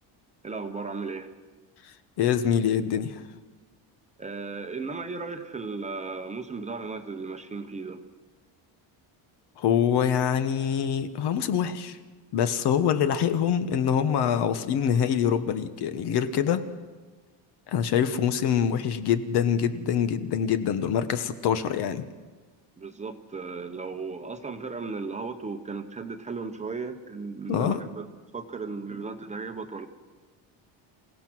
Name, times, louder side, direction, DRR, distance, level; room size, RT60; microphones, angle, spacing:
voice 1, 0.4-1.3 4.2-8.0 22.8-28.1 28.3-29.9, right 4 dB, 15° right, 6 dB, 0.9 m, -35 dB
voice 2, 2.2-3.2 9.6-12.0 12.3-16.6 17.7-22.0 27.5-27.8, left 8 dB, 60° left, 10 dB, 1.3 m, -25 dB
27.5 x 16.5 x 6.2 m, 1.3 s
cardioid pair, 175°, 44 cm